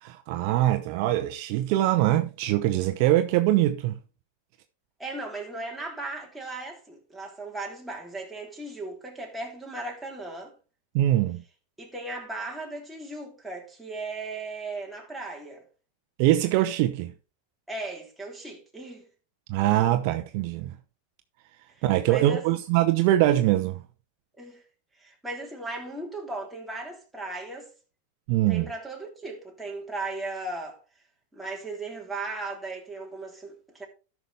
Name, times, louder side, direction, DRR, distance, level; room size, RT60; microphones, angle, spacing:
voice 1, 0.0-4.0 10.9-11.4 16.2-17.1 19.5-20.8 21.8-23.8 28.3-28.7, right 14 dB, 55° right, 0.8 m, -23 dB
voice 2, 5.0-10.5 11.8-15.6 17.7-19.0 21.7-22.4 24.4-24.6 24.9-27.7 28.5-30.8 31.3-33.9, right 2 dB, 5° right, 3.0 m, -37 dB
13.0 x 5.9 x 3.3 m
hypercardioid pair, 110°, 0 cm